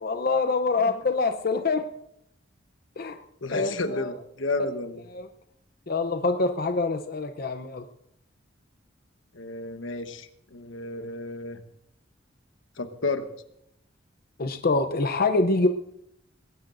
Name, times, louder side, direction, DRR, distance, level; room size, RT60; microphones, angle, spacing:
voice 1, 0.0-1.9 3.0-3.2 3.5-4.1 5.1-5.3 5.9-7.9 14.4-15.7, left 3 dB, 50° left, 7 dB, 0.7 m, -25 dB
voice 2, 3.4-5.0 9.3-11.6 12.8-13.3, left 3 dB, 85° left, 8 dB, 1.1 m, -32 dB
20.5 x 17.5 x 2.6 m, 0.77 s
head